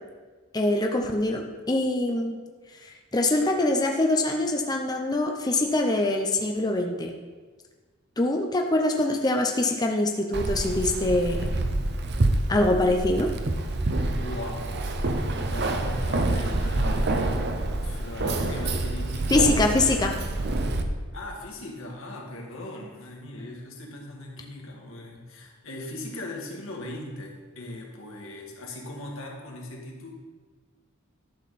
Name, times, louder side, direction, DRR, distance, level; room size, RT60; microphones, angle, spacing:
voice 1, 0.5-2.3 2.8-7.1 8.2-11.5 12.5-13.3 19.3-20.1, left 2 dB, 20° left, 2 dB, 0.6 m, -24 dB
Keys jangling, 10.3-20.8, right 2 dB, 55° right, 0.7 m, -27 dB
voice 2, 14.0-14.6 15.0-20.0 21.1-30.1, left 1 dB, 90° left, -1 dB, 1.9 m, -39 dB
11.5 x 6.4 x 4.2 m, 1.4 s
head